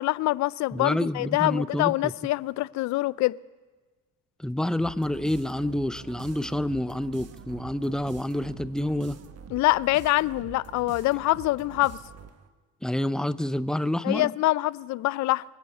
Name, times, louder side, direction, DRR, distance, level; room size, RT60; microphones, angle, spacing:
voice 1, 0.0-3.4 9.5-12.0 14.0-15.4, left 18 dB, 60° left, 0.5 m, -25 dB
voice 2, 0.7-2.1 4.4-9.2 12.8-14.3, left 1 dB, ahead, 0.5 m, -28 dB
sound 1, 4.8-12.5, right 8 dB, 50° right, 1.2 m, -45 dB
24.0 x 8.3 x 6.6 m
supercardioid pair, 65°, 33 cm